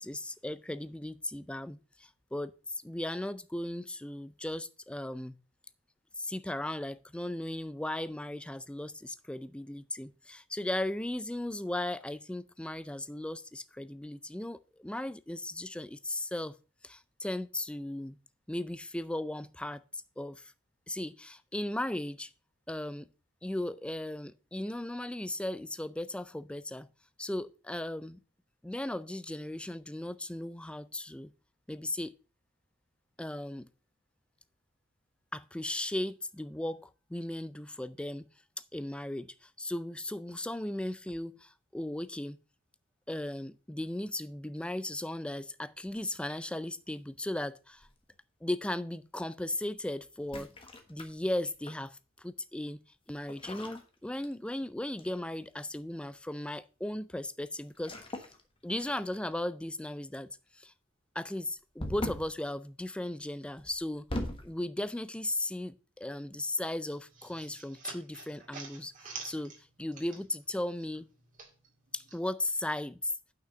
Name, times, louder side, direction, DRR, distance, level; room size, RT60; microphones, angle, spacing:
voice 1, 0.0-5.4 6.2-16.5 16.8-18.2 18.5-19.8 20.2-20.5 20.9-22.3 22.7-23.1 23.4-26.9 27.2-28.2 28.6-31.3 31.7-32.1 33.2-33.7 35.3-38.3 38.7-42.4 43.1-47.9 48.4-50.5 50.9-52.8 53.1-58.3 58.6-60.7 61.2-64.1 64.4-71.1 71.9-73.1, left 1 dB, 5° left, 0.4 m, -37 dB
sound 1, 45.8-46.6 47.8-48.1 50.2-51.9 53.3-54.6 55.0-55.3 57.7-58.4 58.7-59.3 61.8-62.4 63.6-64.5, left 1 dB, 25° left, 1.3 m, -40 dB
sound 2, 66.9-70.5 70.8-72.2, right 4 dB, 40° right, 2.2 m, -47 dB
6.0 x 5.9 x 6.7 m
head